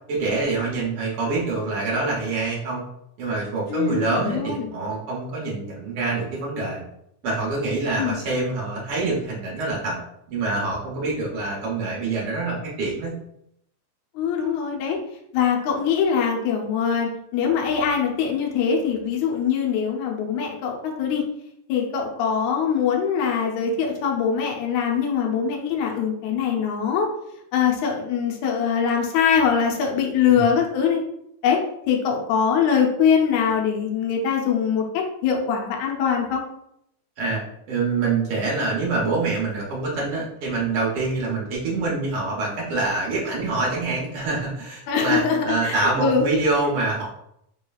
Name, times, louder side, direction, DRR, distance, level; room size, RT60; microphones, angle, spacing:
voice 1, 0.1-2.8 3.2-6.8 7.2-10.0 10.3-13.1 30.3-30.4 37.2-37.4 37.7-47.1, right 3 dB, 85° right, -4 dB, 1.2 m, -25 dB
voice 2, 3.7-4.7 8.0-8.2 14.2-15.0 15.3-21.2 21.7-27.1 27.5-31.0 31.4-31.6 31.9-36.4 44.9-46.3, left 7 dB, 75° left, 0 dB, 1.8 m, -22 dB
4.9 x 3.2 x 2.3 m, 0.76 s
omnidirectional pair, 3.9 m